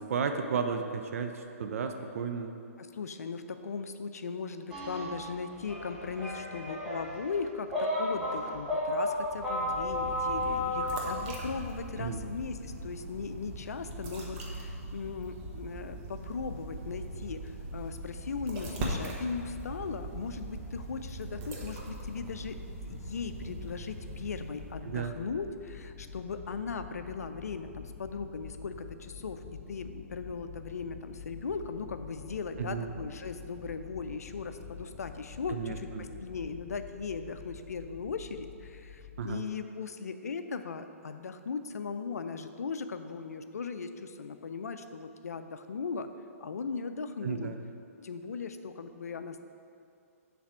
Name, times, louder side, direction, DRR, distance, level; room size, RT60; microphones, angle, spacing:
voice 1, 0.0-2.5 12.0-12.2 24.8-25.1 32.6-32.9 35.5-36.0 39.2-39.4 47.2-47.6, right 6 dB, 65° right, 6 dB, 0.5 m, -33 dB
voice 2, 2.8-22.6 22.8-46.1 46.4-47.5 48.0-49.4, left 5 dB, 90° left, 9 dB, 0.4 m, -38 dB
sound 1, 4.7-11.1, left 1 dB, 10° right, 1.5 m, -33 dB
sound 2, 9.2-25.0, right 1 dB, 35° right, 1.1 m, -41 dB
sound 3, 21.7-39.4, left 6 dB, 30° left, 0.5 m, -48 dB
7.3 x 3.4 x 6.0 m, 2.5 s
hypercardioid pair, 140°, 8 cm